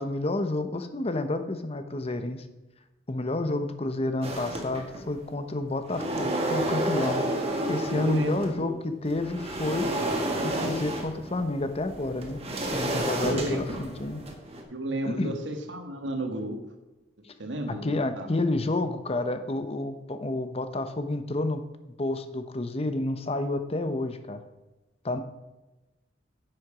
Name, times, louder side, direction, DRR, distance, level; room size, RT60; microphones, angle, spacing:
voice 1, 0.0-2.4 3.1-7.2 7.7-10.1 10.4-12.4 12.7-14.2 15.0-15.4 17.7-21.7 22.0-24.4 25.0-25.2, left 2 dB, 35° left, 9 dB, 0.8 m, -30 dB
sound 1, 4.2-5.2 5.6-8.6 9.1-14.6, right 1 dB, 35° right, 1.6 m, -31 dB
voice 2, 7.9-8.8 13.2-13.6 14.7-16.6 17.4-18.3, right 1 dB, 90° right, 5 dB, 1.5 m, -32 dB
10.0 x 7.8 x 5.0 m, 1.1 s
head